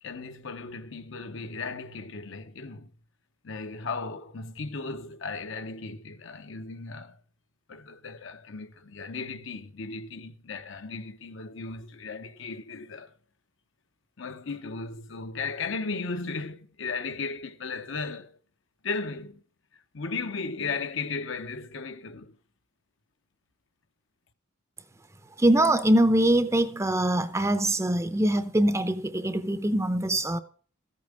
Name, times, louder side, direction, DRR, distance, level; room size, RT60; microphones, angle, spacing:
voice 1, 0.0-2.9 3.4-7.2 7.7-13.1 14.2-18.4 18.8-19.4 19.7-22.4, left 4 dB, 60° left, 0.8 m, -36 dB
voice 2, 25.4-30.4, right 1 dB, 15° right, 0.6 m, -23 dB
14.5 x 8.5 x 5.1 m
head